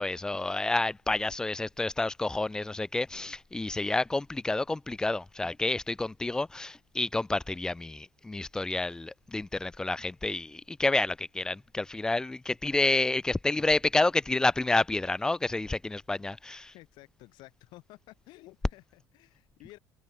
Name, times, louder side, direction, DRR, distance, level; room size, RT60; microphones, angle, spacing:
voice 1, 0.0-16.7, left 2 dB, 10° left, 0.3 m, -29 dB
voice 2, 16.7-19.8, left 19 dB, 70° left, 2.1 m, -53 dB
cardioid pair, 150°, 8 cm